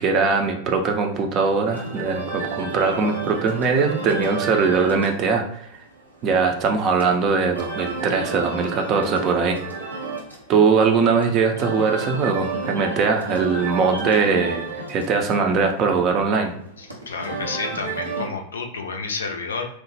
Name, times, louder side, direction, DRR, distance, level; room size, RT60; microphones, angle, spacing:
voice 1, 0.0-5.6 6.2-9.6 10.5-16.5, right 5 dB, 35° right, 3 dB, 0.4 m, -21 dB
sound 1, 1.7-18.3, right 3 dB, 85° right, 0.6 m, -32 dB
voice 2, 16.8-19.7, left 4 dB, 70° left, 3 dB, 0.4 m, -30 dB
3.0 x 2.1 x 2.8 m, 0.70 s
figure-of-eight pair, 90°, 0 cm